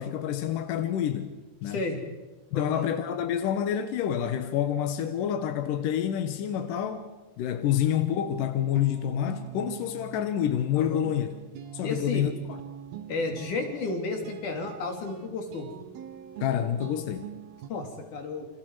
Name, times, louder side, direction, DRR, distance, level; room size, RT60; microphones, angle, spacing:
voice 1, 0.0-1.8 2.5-7.1 7.4-11.3 11.7-12.3 16.4-17.3, left 10 dB, 75° left, 2.1 m, -28 dB
voice 2, 1.7-2.0 2.5-3.0 10.8-11.1 11.8-12.3 13.1-15.7 17.7-18.5, left 3 dB, 50° left, 4.1 m, -32 dB
sound 1, 8.5-17.7, right 10 dB, 70° right, 2.9 m, -44 dB
28.0 x 26.0 x 4.8 m
omnidirectional pair, 5.1 m